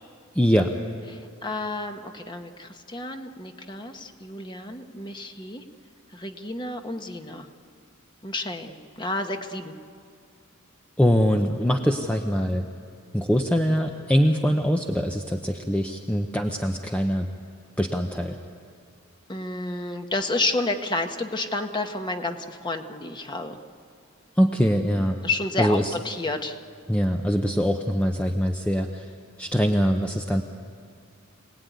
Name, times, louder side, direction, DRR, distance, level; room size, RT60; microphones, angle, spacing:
voice 1, 0.3-0.7 11.0-12.6 13.1-17.3 17.8-18.4 24.4-25.2 25.6-25.9 26.9-29.1 29.4-30.4, equal, 5° left, 3 dB, 0.8 m, -23 dB
voice 2, 1.1-5.6 6.1-7.5 8.2-9.7 19.3-23.6 25.2-26.6, left 2 dB, 20° left, 5 dB, 1.3 m, -30 dB
26.5 x 18.5 x 9.4 m, 2.3 s
head